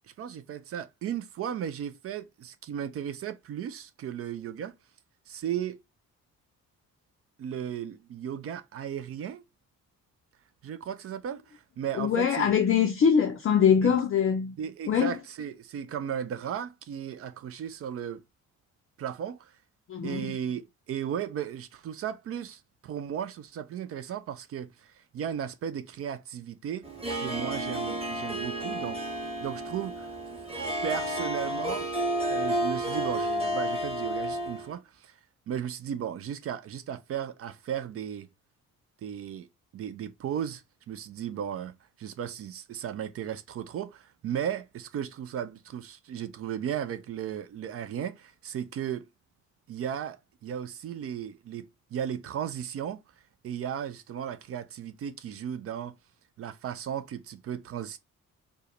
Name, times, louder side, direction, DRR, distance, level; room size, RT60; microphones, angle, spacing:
voice 1, 0.2-4.7 5.3-5.8 7.4-9.4 10.6-12.5 13.8-14.0 14.6-18.2 19.0-19.5 20.0-26.8 27.2-29.0 29.4-30.1 30.8-31.9 32.3-35.1 35.5-38.3 39.0-39.5 39.7-49.1 49.7-53.0 53.4-55.9 56.4-58.0, right 9 dB, 35° right, 0.5 m, -35 dB
voice 2, 11.9-14.5 14.9-15.1 19.9-20.4, left 7 dB, 30° left, 0.6 m, -23 dB
Harp, 26.8-34.7, right 1 dB, 15° right, 1.2 m, -31 dB
4.5 x 2.1 x 3.0 m
figure-of-eight pair, 40°, 45 cm